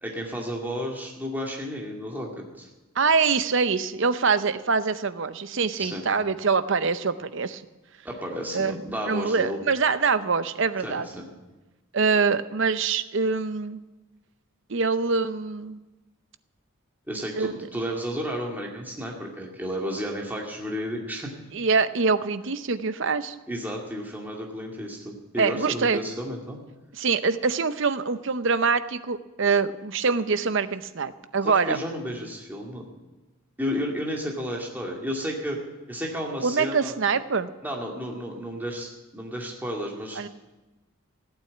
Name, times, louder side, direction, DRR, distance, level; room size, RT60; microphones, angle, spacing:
voice 1, 0.0-2.7 5.8-6.1 8.0-9.6 10.8-11.3 17.1-21.3 23.5-26.6 31.4-32.8 33.6-35.6 35.9-37.0 37.6-40.3, equal, 10° right, -1 dB, 2.1 m, -32 dB
voice 2, 3.0-7.6 8.5-8.8 9.1-11.1 11.9-13.8 14.7-15.8 17.3-17.5 21.5-23.4 25.4-26.0 27.0-31.8 36.4-37.5 40.2-40.3, right 5 dB, 55° right, 13 dB, 0.7 m, -24 dB
15.0 x 9.0 x 8.5 m, 1.1 s
head